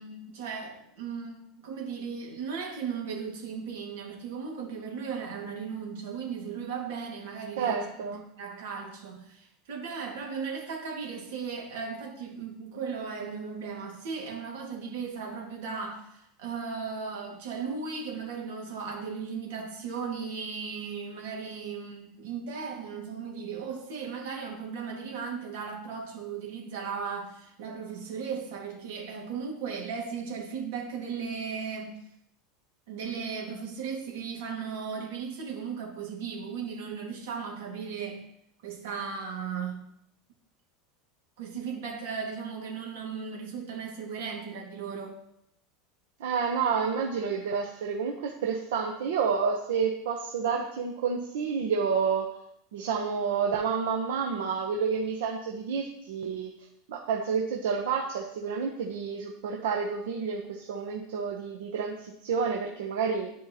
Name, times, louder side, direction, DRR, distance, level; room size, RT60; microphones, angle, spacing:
voice 1, 0.0-32.0 32.9-38.2 38.6-39.9 41.4-45.2, right 6 dB, 65° right, 0 dB, 2.0 m, -36 dB
voice 2, 7.6-8.2 46.2-52.3 52.7-56.5 56.9-63.3, right 6 dB, 85° right, 1 dB, 0.8 m, -29 dB
11.5 x 4.6 x 2.9 m, 0.76 s
supercardioid pair, 175°, 0 cm